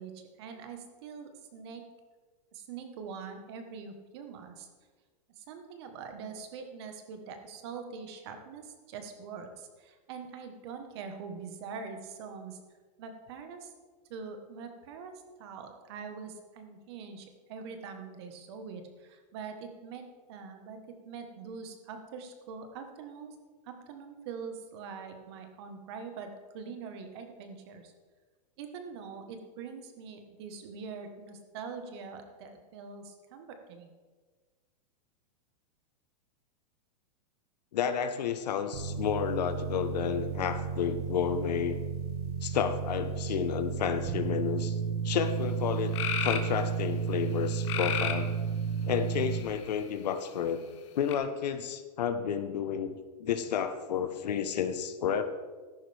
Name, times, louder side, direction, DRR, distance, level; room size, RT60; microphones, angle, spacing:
voice 1, 0.0-1.8 2.5-4.7 5.4-12.6 13.0-13.7 14.1-20.8 21.0-23.3 23.6-27.9 28.6-33.9, right 5 dB, 40° right, 6 dB, 1.3 m, -43 dB
voice 2, 37.7-41.8 42.4-44.7 45.0-45.9 46.2-48.3 48.8-50.6 50.9-52.9 53.2-55.2, left 8 dB, 80° left, 9 dB, 1.1 m, -31 dB
sound 1, 38.7-49.4, right 7 dB, 65° right, 1.9 m, -33 dB
sound 2, 45.3-45.4 45.9-46.5 47.6-48.3 49.1-49.8 51.1-51.2, left 9 dB, 45° left, 1.1 m, -32 dB
14.0 x 11.0 x 3.5 m, 1.4 s
supercardioid pair, 175°, 21 cm